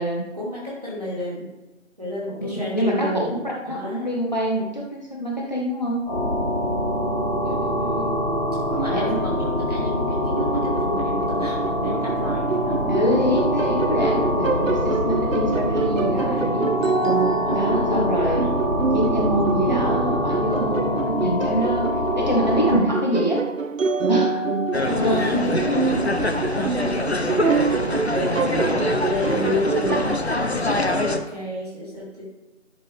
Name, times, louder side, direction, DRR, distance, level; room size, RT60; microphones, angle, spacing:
voice 1, 0.3-1.5 2.0-3.3 3.6-4.1 7.4-8.1 8.7-13.0 14.5-15.0 17.5-18.4 24.9-27.6 28.0-30.0 30.4-32.3, left 1 dB, 30° right, -6 dB, 3.0 m, -32 dB
voice 2, 2.4-3.1 3.7-6.0 8.9-9.2 12.9-16.7 17.5-18.5 18.9-21.9 22.1-23.5 24.1-24.4 25.0-25.2 28.6-28.9, equal, 35° left, -2 dB, 1.6 m, -25 dB
sound 1, 6.0-22.8, equal, 10° right, 3.1 m, -24 dB
sound 2, 10.3-30.2, right 4 dB, 80° right, 0.7 m, -26 dB
sound 3, 24.7-31.2, left 2 dB, 55° left, 1.0 m, -24 dB
12.0 x 7.1 x 3.5 m, 1.1 s
figure-of-eight pair, 180°, 38 cm